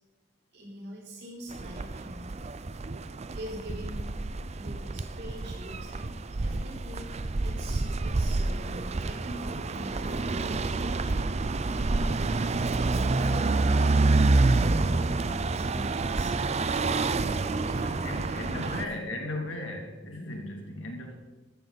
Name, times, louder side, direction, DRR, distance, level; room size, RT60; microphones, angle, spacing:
voice 1, 0.5-2.4 3.3-4.2 4.5-11.3 11.6-11.8 13.1-13.5 14.8-17.0 17.6-19.1, equal, 60° right, -3 dB, 4.4 m, -44 dB
sound 1, 1.5-18.9, right 3 dB, 35° right, 0.5 m, -28 dB
voice 2, 18.0-21.2, left 1 dB, 80° left, 2 dB, 2.6 m, -36 dB
14.5 x 13.5 x 4.1 m, 1.2 s
head